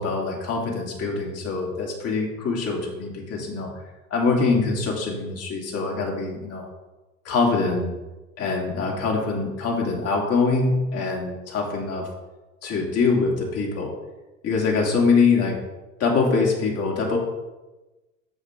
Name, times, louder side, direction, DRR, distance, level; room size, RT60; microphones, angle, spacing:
voice 1, 0.0-3.7 4.1-6.7 7.2-7.9 8.4-12.1 12.6-13.9 14.4-15.6 16.0-17.2, left 4 dB, 35° left, -1 dB, 2.6 m, -24 dB
12.5 x 5.0 x 3.7 m, 1.1 s
hypercardioid pair, 85°, 40 cm